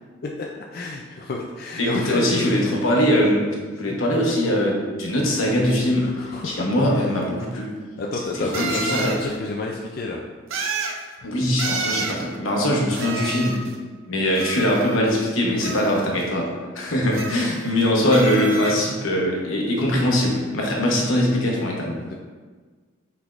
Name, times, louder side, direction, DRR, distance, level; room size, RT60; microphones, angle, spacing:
voice 1, 0.2-2.7 6.0-6.7 7.0-7.1 8.0-10.2 11.2-11.3 15.7-15.9 22.0-22.1, left 3 dB, 50° left, -1 dB, 0.3 m, -30 dB
voice 2, 1.8-3.4 3.8-6.2 6.4-7.7 8.1-9.2 11.2-13.6 14.0-22.0, equal, 85° left, -2 dB, 1.0 m, -21 dB
sound 1, 7.2-7.3 8.5-9.2 10.5-11.0 11.6-12.2 12.9-13.7 14.4-15.2 15.6-16.2 17.1-17.8 18.1-18.8, right 4 dB, 85° right, 0.5 m, -30 dB
6.1 x 3.4 x 2.4 m, 1.5 s
head